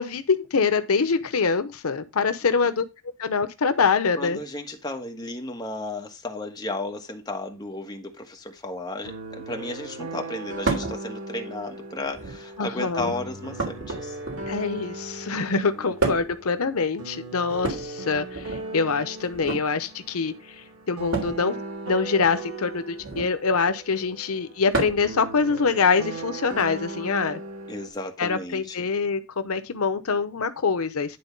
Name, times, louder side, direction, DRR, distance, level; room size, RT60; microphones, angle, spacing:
voice 1, 0.0-2.8 3.2-4.4 12.6-13.1 14.5-21.6 21.9-27.4 28.2-31.2, left 5 dB, 85° left, 0.8 m, -25 dB
voice 2, 4.2-14.2 15.8-16.2 27.7-28.8, left 2 dB, 20° left, 1.4 m, -34 dB
sound 1, 9.0-27.9, right 2 dB, 85° right, 2.0 m, -38 dB
sound 2, 10.6-11.0 12.0-12.5 13.6-14.7 16.0-16.4 17.5-18.6 19.3-19.6 21.1-21.4 23.0-23.4 24.7-25.1 26.6-26.7 27.9-28.0, right 3 dB, 60° right, 3.4 m, -29 dB
10.5 x 3.9 x 5.3 m
head